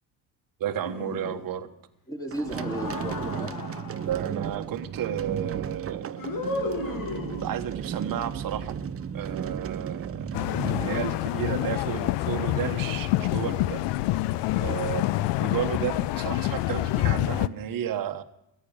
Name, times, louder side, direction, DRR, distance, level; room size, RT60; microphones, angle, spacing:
voice 1, 0.6-1.7 3.8-6.2 7.4-8.8 9.1-10.5 10.8-13.9 14.6-15.1 15.4-18.2, right 10 dB, 45° right, 8 dB, 1.4 m, -32 dB
sound 1, 0.8-1.7 2.4-4.2 6.2-7.7, left 2 dB, 45° left, 2.6 m, -34 dB
voice 2, 2.1-3.6 10.5-11.0 14.5-14.8, right 1 dB, 5° left, 2 dB, 3.5 m, -35 dB
sound 2, 2.3-11.7, right 8 dB, 30° right, 0.7 m, -35 dB
sound 3, 10.3-17.5, left 16 dB, 65° left, 0.7 m, -27 dB
14.5 x 9.0 x 8.8 m, 0.80 s
supercardioid pair, 75°, 46 cm